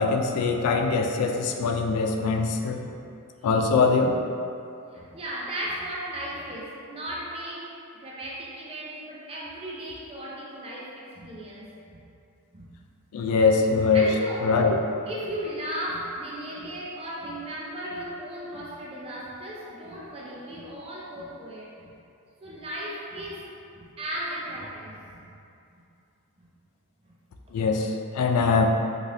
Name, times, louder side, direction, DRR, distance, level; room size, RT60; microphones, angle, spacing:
voice 1, 0.0-2.8 3.4-4.2 13.1-14.1 14.4-14.8 27.5-28.7, left 4 dB, 90° left, 9 dB, 0.3 m, -22 dB
voice 2, 4.9-12.0 12.5-12.7 13.2-13.3 13.9-14.7 15.1-21.9 22.4-25.2 26.4-26.5 27.0-27.1 27.7-27.8, right 1 dB, 25° right, -5 dB, 0.5 m, -36 dB
3.2 x 2.5 x 2.7 m, 2.6 s
head